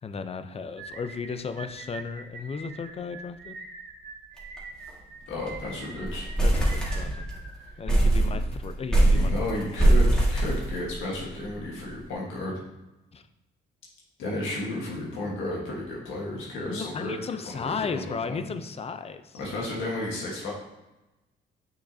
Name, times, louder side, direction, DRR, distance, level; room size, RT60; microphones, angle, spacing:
voice 1, 0.0-3.5 6.4-7.3 7.8-9.3 9.7-9.9 13.1-13.2 16.7-19.4, left 5 dB, 30° left, 10 dB, 0.5 m, -35 dB
sound 1, 0.8-8.1, right 3 dB, 55° right, 1.0 m, -44 dB
sound 2, 4.4-4.6 4.9-5.0 5.3-5.7 6.0-7.4 7.9-11.2, right 1 dB, 5° left, 1.7 m, -22 dB
voice 2, 5.3-6.3 8.3-8.4 9.1-12.5 14.2-18.4 19.3-20.5, left 1 dB, 85° left, -3 dB, 1.4 m, -33 dB
6.1 x 6.0 x 2.7 m, 1.0 s
cardioid pair, 90°, 20 cm